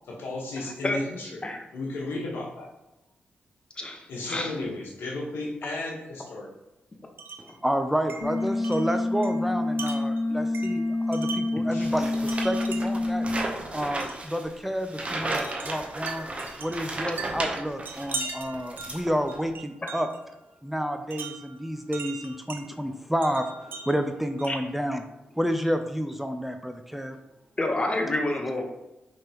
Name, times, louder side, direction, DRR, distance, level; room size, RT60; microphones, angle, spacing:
voice 1, 0.1-1.4 1.7-2.7 4.1-6.5 11.7-11.9, left 2 dB, 85° left, -2 dB, 1.1 m, -34 dB
voice 2, 3.8-4.5 19.8-19.9 24.5-24.6 27.6-28.6, left 2 dB, 25° left, 2 dB, 0.9 m, -28 dB
Wind chime, 7.2-7.6 8.1-11.7 12.3-13.1 14.0-14.3 15.3-20.2 21.1-22.7 23.2-24.7, right 4 dB, 65° right, 0.6 m, -40 dB
voice 3, 7.4-13.3 13.7-16.3 16.6-20.1 20.6-25.0 25.3-27.2, equal, 5° right, 7 dB, 0.4 m, -30 dB
sound 1, 8.2-13.4, left 2 dB, 60° left, 0.9 m, -27 dB
sound 2, 11.8-18.2 18.5-19.5, right 2 dB, 35° right, 0.8 m, -34 dB
5.3 x 3.5 x 2.9 m, 0.98 s
cardioid pair, 75°, 4 cm